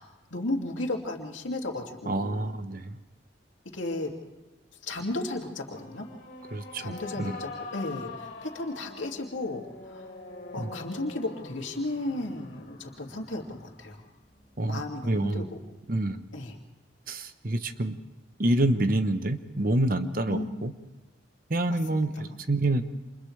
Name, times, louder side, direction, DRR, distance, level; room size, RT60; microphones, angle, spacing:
voice 1, 0.0-2.5 3.7-4.1 4.8-6.1 6.8-10.1 10.5-14.0 14.6-15.6 16.3-16.6 20.3-20.7 21.7-22.4, left 2 dB, 85° left, 1 dB, 2.5 m, -34 dB
voice 2, 2.1-3.0 6.5-7.4 10.6-10.7 14.6-15.5 15.9-16.2 17.1-18.0 18.4-20.7 21.5-22.9, right 1 dB, 45° right, 10 dB, 0.9 m, -27 dB
sound 1, 5.7-15.1, left 3 dB, 65° left, 3.2 m, -44 dB
29.0 x 27.5 x 3.3 m, 1.1 s
head